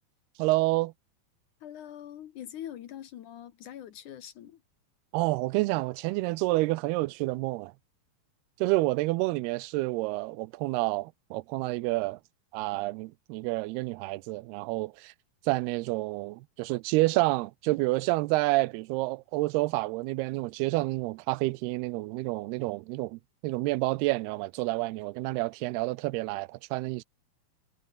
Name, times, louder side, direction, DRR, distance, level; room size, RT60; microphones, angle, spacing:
voice 1, 0.4-0.9 5.1-7.7 8.6-12.2 12.5-15.1 15.5-27.0, right 21 dB, 85° right, 2.6 m, -29 dB
voice 2, 1.6-4.6, left 11 dB, 65° left, 2.3 m, -43 dB
omnidirectional pair, 4.5 m